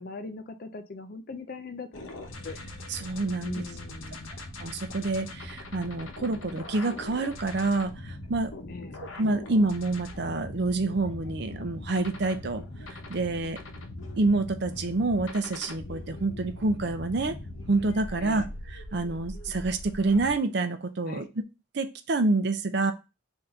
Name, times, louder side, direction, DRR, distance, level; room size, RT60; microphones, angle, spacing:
voice 1, 0.0-2.6 3.4-4.3 8.7-9.1 18.2-18.5 21.1-21.3, left 3 dB, 45° left, 8 dB, 0.4 m, -41 dB
sound 1, 1.9-20.3, left 1 dB, 75° left, 0.8 m, -41 dB
voice 2, 2.9-3.5 4.6-8.5 9.2-12.6 13.1-13.6 14.2-17.3 17.7-18.4 18.7-21.3 21.7-22.9, right 2 dB, 55° right, 9 dB, 0.5 m, -27 dB
3.8 x 2.6 x 4.3 m, 0.28 s
head